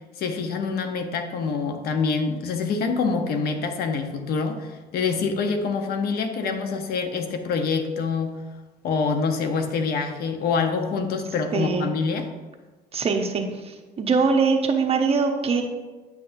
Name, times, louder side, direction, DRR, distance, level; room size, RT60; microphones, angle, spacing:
voice 1, 0.2-8.3 8.8-12.3, left 4 dB, 65° left, 6 dB, 0.8 m, -26 dB
voice 2, 11.5-11.9 12.9-15.6, right 4 dB, 35° right, 3 dB, 0.9 m, -22 dB
9.1 x 5.7 x 2.6 m, 1.2 s
cardioid pair, 110°, 17 cm